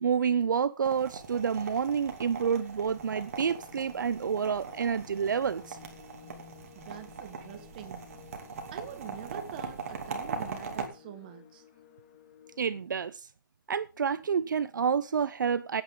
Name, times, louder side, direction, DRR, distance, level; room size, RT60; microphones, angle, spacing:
voice 1, 0.0-5.8 12.6-13.3 13.7-15.8, right 7 dB, 65° right, 0.7 m, -29 dB
sound 1, 0.8-10.9, right 5 dB, 45° right, 2.9 m, -41 dB
sound 2, 2.9-12.8, left 10 dB, 30° left, 2.1 m, -55 dB
voice 2, 6.8-8.1 8.7-11.7, right 10 dB, 25° right, 1.6 m, -45 dB
17.0 x 9.0 x 3.8 m
hypercardioid pair, 170°, 11 cm